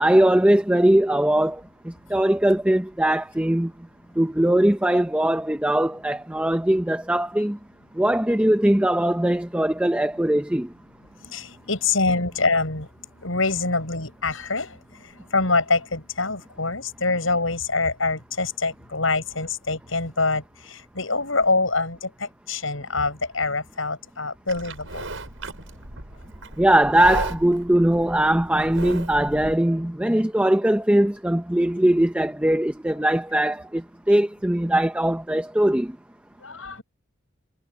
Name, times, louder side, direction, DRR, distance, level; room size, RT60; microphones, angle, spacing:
voice 1, 0.0-3.7 4.2-7.6 7.9-10.7 26.6-35.9, right 1 dB, 5° right, 0.6 m, -20 dB
voice 2, 11.2-12.9 13.2-14.8 15.3-25.0 36.4-36.8, left 3 dB, 75° left, 7.2 m, -25 dB
Livestock farm animals working animals, 24.5-29.5, right 2 dB, 75° right, 6.8 m, -35 dB
head